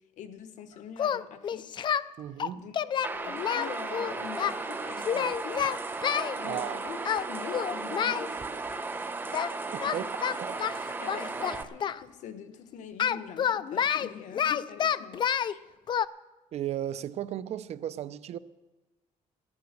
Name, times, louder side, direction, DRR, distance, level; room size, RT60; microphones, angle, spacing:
voice 1, 0.2-1.7 2.5-2.8 3.1-5.7 6.4-8.4 9.8-10.4 11.0-15.7, left 7 dB, 70° left, 1.3 m, -44 dB
Singing, 1.0-2.1 2.4-4.5 5.0-6.3 7.0-7.3 7.5-8.3 9.3-9.5 9.8-12.0 13.0-15.5 15.9-16.0, left 8 dB, 35° left, 0.4 m, -29 dB
voice 2, 2.2-2.7 6.4-6.8 9.7-10.0 10.4-10.6 16.5-18.4, right 11 dB, 55° right, 0.6 m, -35 dB
sound 1, 3.0-11.6, right 3 dB, 15° right, 0.8 m, -35 dB
15.0 x 9.7 x 6.6 m
cardioid pair, 150°, 13 cm